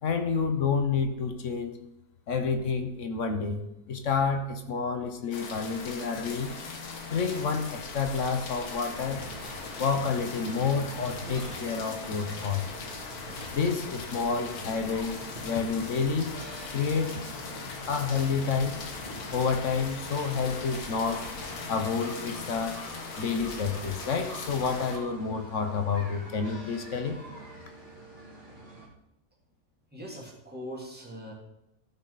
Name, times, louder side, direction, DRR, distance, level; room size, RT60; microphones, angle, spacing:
voice 1, 0.0-1.8 2.3-3.6 3.9-6.5 7.1-9.2 9.8-12.7 13.5-16.3 16.7-17.2 17.9-18.8 19.3-21.3 21.7-22.9 23.2-27.2, left 5 dB, 55° left, 6 dB, 1.2 m, -29 dB
sound 1, 5.3-25.0, left 4 dB, 75° left, 1.7 m, -40 dB
sound 2, 8.9-28.9, right 1 dB, 30° right, 2.4 m, -46 dB
voice 2, 29.9-31.3, equal, 5° right, -3 dB, 2.2 m, -41 dB
14.5 x 6.0 x 4.1 m, 0.87 s
omnidirectional pair, 1.6 m